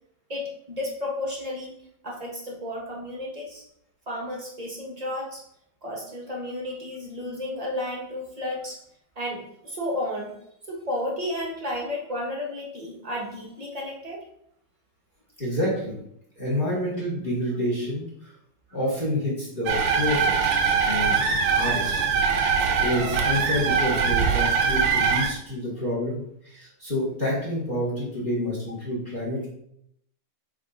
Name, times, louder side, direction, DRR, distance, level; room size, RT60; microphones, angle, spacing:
voice 1, 0.3-1.7 2.0-3.6 4.1-5.4 5.8-8.8 9.1-10.3 10.7-14.2, left 1 dB, 20° right, -3 dB, 1.2 m, -32 dB
voice 2, 15.4-16.0 16.4-18.3 18.7-20.5 20.8-21.2 21.5-22.0 22.5-29.5, left 1 dB, 25° left, -7 dB, 2.1 m, -28 dB
sound 1, 19.7-25.3, right 5 dB, 85° right, 1.8 m, -22 dB
7.4 x 3.5 x 3.8 m, 0.74 s
omnidirectional pair, 2.4 m